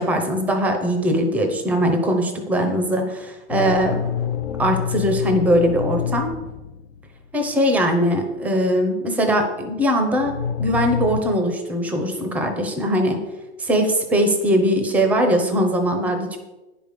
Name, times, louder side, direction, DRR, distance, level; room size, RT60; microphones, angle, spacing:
voice 1, 0.0-4.1 4.6-6.3 7.3-10.3 10.6-13.2 13.6-16.4, equal, 5° right, 4 dB, 0.6 m, -21 dB
sound 1, 3.5-7.5 9.6-9.7 10.2-11.2, left 8 dB, 55° left, 0.7 m, -27 dB
9.9 x 5.3 x 6.5 m, 1.1 s
hypercardioid pair, 160°, 35 cm